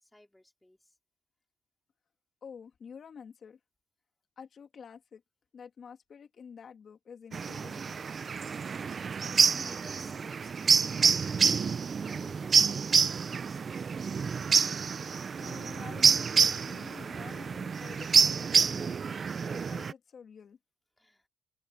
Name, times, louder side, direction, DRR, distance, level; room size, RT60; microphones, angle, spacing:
voice 1, 0.0-0.8 9.3-14.1 21.0-21.3, left 1 dB, 10° left, 3.9 m, -54 dB
voice 2, 2.4-3.6 4.4-5.2 5.5-7.9 15.4-20.6, left 6 dB, 50° left, 2.9 m, -49 dB
sound 1, 7.3-19.9, right 6 dB, 45° right, 0.6 m, -27 dB
open air
cardioid pair, 90°, 0 cm